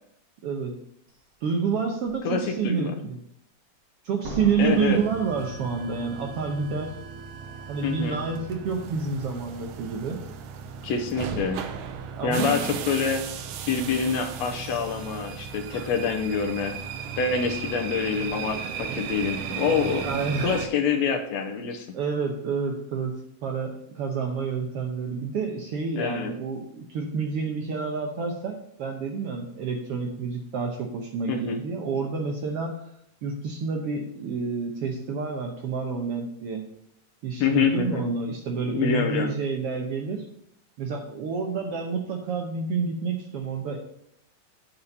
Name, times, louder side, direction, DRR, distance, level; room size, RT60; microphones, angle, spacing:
voice 1, 0.4-0.7 1.4-3.2 4.0-6.9 7.7-10.2 12.2-13.0 15.7-15.9 20.0-20.5 21.9-23.2 23.4-32.8 33.2-36.7 37.2-40.3 40.8-43.8, right 5 dB, 70° right, 2 dB, 1.5 m, -29 dB
Slam, 1.1-1.2 1.8-2.2 4.2-6.1 6.4-6.5, right 1 dB, 40° right, 1.8 m, -39 dB
voice 2, 2.2-2.9 4.6-5.0 7.8-8.2 10.8-11.6 12.2-13.2 13.7-16.7 17.2-20.1 20.4-21.9 26.0-26.3 31.3-31.6 37.4-38.0 38.7-39.3, left 5 dB, 75° left, 5 dB, 1.8 m, -26 dB
sound 1, 4.6-20.7, right 7 dB, 90° right, 2.3 m, -36 dB
8.5 x 4.3 x 6.6 m, 0.70 s
omnidirectional pair, 3.5 m